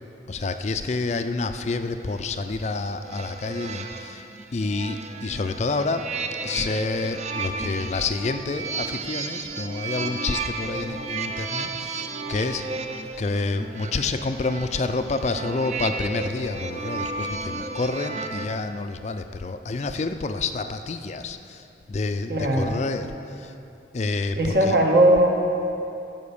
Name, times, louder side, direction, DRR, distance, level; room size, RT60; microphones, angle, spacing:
voice 1, 0.3-4.2 4.5-6.1 6.4-12.7 13.0-23.5 23.9-24.8, left 3 dB, 40° left, 8 dB, 0.4 m, -28 dB
sound 1, 2.0-18.5, right 3 dB, 40° right, 0.5 m, -33 dB
voice 2, 22.3-22.8 24.4-25.3, right 1 dB, 55° right, 1 dB, 1.4 m, -19 dB
14.5 x 5.6 x 7.0 m, 2.8 s
head